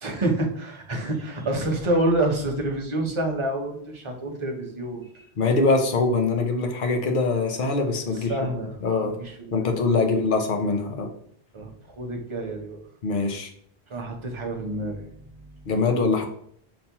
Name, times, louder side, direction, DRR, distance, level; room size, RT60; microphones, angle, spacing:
voice 1, 0.0-5.3 8.1-8.7 9.0-9.7 10.0-10.1 11.5-12.8 13.9-15.7, right 1 dB, 35° right, 1 dB, 0.6 m, -28 dB
voice 2, 5.4-8.5 8.8-9.1 9.5-11.1 13.0-13.5 15.7-16.2, left 3 dB, 55° left, 4 dB, 0.7 m, -23 dB
5.9 x 2.0 x 2.8 m, 0.65 s
omnidirectional pair, 1.1 m